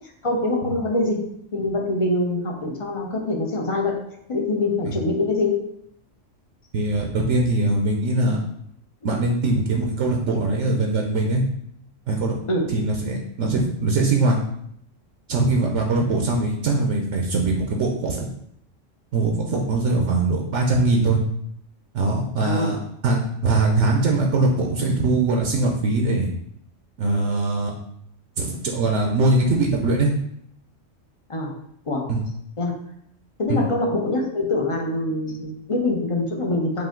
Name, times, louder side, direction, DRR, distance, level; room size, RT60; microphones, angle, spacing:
voice 1, 0.2-1.3 1.5-4.0 4.3-5.6 12.5-12.7 22.4-22.8 24.9-25.0 31.3-31.5 31.9-32.1 32.6-32.7 33.4-36.9, left 2 dB, 35° left, 0 dB, 0.6 m, -24 dB
voice 2, 6.7-8.4 9.0-11.4 12.1-12.4 12.7-14.4 15.3-18.3 19.1-21.2 21.9-22.8 23.0-26.3 27.0-27.7 28.4-30.1 32.1-32.2 33.5-33.7, right 2 dB, 75° right, 1 dB, 1.0 m, -21 dB
5.0 x 2.6 x 3.7 m, 0.71 s
omnidirectional pair, 1.3 m